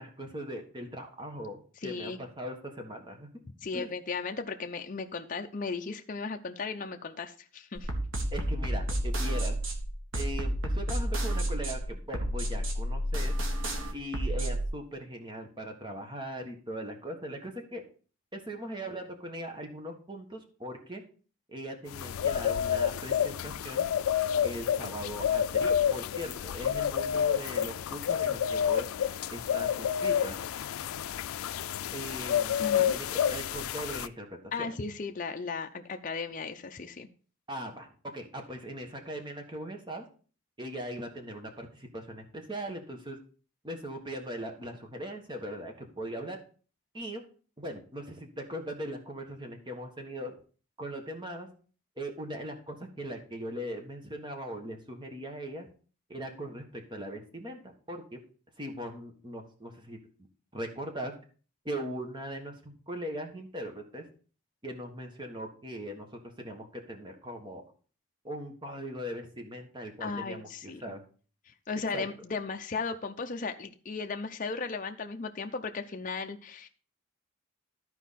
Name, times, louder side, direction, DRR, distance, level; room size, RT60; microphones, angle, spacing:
voice 1, 0.0-3.3 3.7-3.9 8.3-9.6 10.1-13.4 13.9-17.8 18.3-21.0 21.5-23.9 24.4-28.9 29.3-30.4 31.9-32.6 32.9-34.3 34.5-34.7 37.5-37.9 38.1-40.0 40.6-43.2 43.6-46.4 46.9-47.2 47.6-50.3 50.8-51.5 52.0-55.7 56.1-58.2 58.6-60.0 60.5-61.1 61.6-64.1 64.6-67.6 68.2-71.0 71.9-72.1, equal, 20° right, 4 dB, 1.4 m, -40 dB
voice 2, 1.8-2.2 3.6-7.9 32.6-32.9 34.5-37.1 70.0-71.0 71.5-76.7, left 4 dB, 40° left, 5 dB, 0.6 m, -36 dB
sound 1, 7.8-14.7, right 1 dB, 70° right, 1.6 m, -30 dB
sound 2, 21.9-34.1, left 9 dB, 90° left, 0.4 m, -29 dB
13.5 x 4.6 x 4.1 m, 0.39 s
head